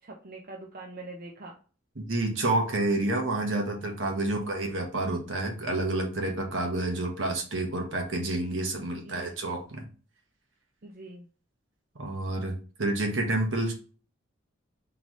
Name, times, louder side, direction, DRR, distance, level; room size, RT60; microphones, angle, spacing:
voice 1, 0.0-1.6 4.2-4.6 9.0-9.3 10.8-11.3, right 2 dB, 50° right, 0 dB, 0.6 m, -44 dB
voice 2, 2.0-9.9 12.0-13.7, right 2 dB, 70° right, 2 dB, 1.2 m, -29 dB
3.9 x 3.4 x 3.0 m, 0.38 s
head